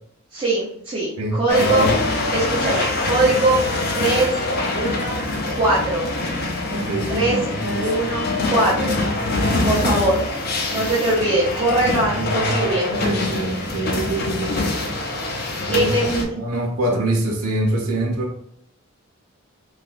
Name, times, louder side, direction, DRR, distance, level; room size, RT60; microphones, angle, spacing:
voice 1, 0.3-1.9 2.3-4.4 4.7-5.2 5.5-6.1 7.1-7.4 7.8-9.0 9.6-10.2 10.7-12.9 15.7-16.3, right 2 dB, 25° right, -9 dB, 0.6 m, -21 dB
voice 2, 1.2-1.9 6.6-7.9 12.2-14.5 15.7-16.0 16.3-18.3, right 1 dB, 85° right, 2 dB, 0.7 m, -25 dB
sound 1, 1.5-16.2, left 2 dB, 45° left, 0.5 m, -24 dB
3.2 x 2.9 x 2.4 m, 0.69 s
head